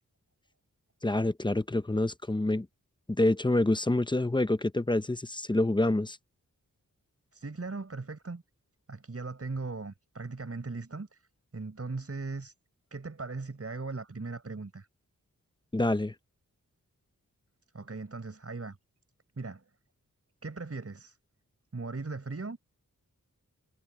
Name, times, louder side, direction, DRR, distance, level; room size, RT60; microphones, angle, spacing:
voice 1, 1.0-2.7 3.1-6.2 15.7-16.1, left 2 dB, 15° left, 0.8 m, -27 dB
voice 2, 7.3-8.4 8.9-11.2 11.5-12.5 12.9-14.9 17.7-18.8 19.4-19.6 20.4-21.2 21.7-22.6, right 3 dB, 45° right, 6.0 m, -38 dB
wide cardioid pair, 95°, 33 cm